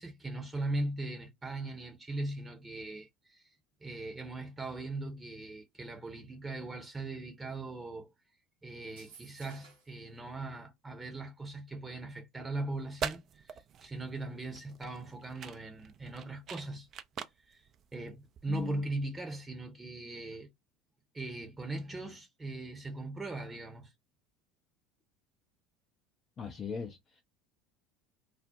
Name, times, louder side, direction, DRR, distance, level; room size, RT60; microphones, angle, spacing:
voice 1, 0.0-3.5 3.8-8.1 8.6-16.9 17.5-17.6 17.9-20.5 21.1-23.9, right 2 dB, 15° right, 0.7 m, -39 dB
sound 1, 8.8-10.0, right 5 dB, 65° right, 0.8 m, -56 dB
sound 2, 12.7-18.8, right 7 dB, 40° right, 0.3 m, -44 dB
voice 2, 18.5-18.8 26.4-27.2, left 6 dB, 30° left, 0.4 m, -39 dB
2.3 x 2.0 x 2.6 m
figure-of-eight pair, 70°, 0 cm